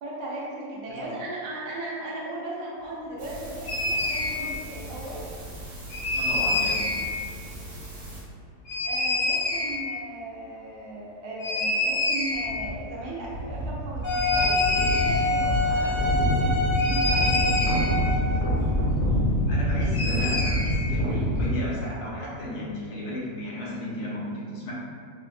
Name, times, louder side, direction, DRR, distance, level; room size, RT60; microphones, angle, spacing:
voice 1, 0.0-5.3 8.8-17.8, right 1 dB, 85° right, -5 dB, 1.1 m, -37 dB
sound 1, 3.2-8.2, right 1 dB, 60° right, 1.2 m, -40 dB
sound 2, 3.7-4.3 5.9-7.1 8.6-9.8 11.4-12.7 13.0-13.1 13.2-21.5, left 1 dB, 55° left, 0.9 m, -25 dB
voice 2, 6.2-7.0 19.5-24.7, left 1 dB, 80° left, -6 dB, 1.3 m, -34 dB
Wind instrument woodwind instrument, 14.0-18.6, left 2 dB, 10° right, 0.5 m, -27 dB
4.3 x 2.0 x 2.4 m, 2.2 s
omnidirectional pair, 1.7 m